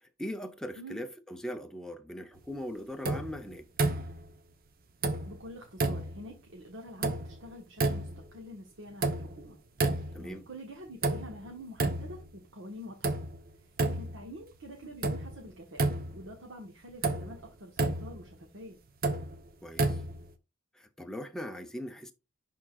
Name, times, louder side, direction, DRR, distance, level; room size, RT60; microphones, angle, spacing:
voice 1, 0.0-3.7 10.1-10.5 19.6-20.0 20.7-22.1, equal, 5° left, 0.7 m, -40 dB
sound 1, 3.0-3.4 3.8-4.3 5.0-5.5 5.8-6.2 7.0-7.5 7.8-8.2 9.0-9.5 9.8-10.3 11.0-11.5 11.8-12.2 13.0-13.4 13.8-14.3 15.0-15.4 15.8-16.3 17.0-17.4 17.8-18.2 19.0-19.4 19.8-20.3, right 2 dB, 45° right, 0.8 m, -31 dB
voice 2, 5.3-9.6 9.8-13.2 13.6-15.8 16.1-18.8, equal, 70° right, 1.3 m, -47 dB
11.0 x 3.7 x 2.4 m
head